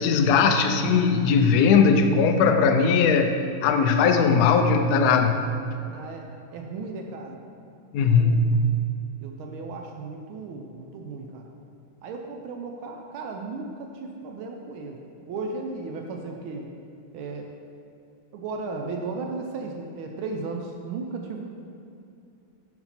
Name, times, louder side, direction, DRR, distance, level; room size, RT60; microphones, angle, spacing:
voice 1, 0.0-3.3 3.6-5.4 7.9-8.6, left 5 dB, 75° left, 6 dB, 0.8 m, -19 dB
voice 2, 5.9-6.3 6.5-7.4 8.0-8.6 9.2-11.5 12.0-15.0 15.3-16.7 17.1-17.5 18.3-21.5, right 3 dB, 85° right, 2 dB, 1.5 m, -35 dB
11.0 x 4.3 x 4.3 m, 2.7 s
omnidirectional pair, 2.2 m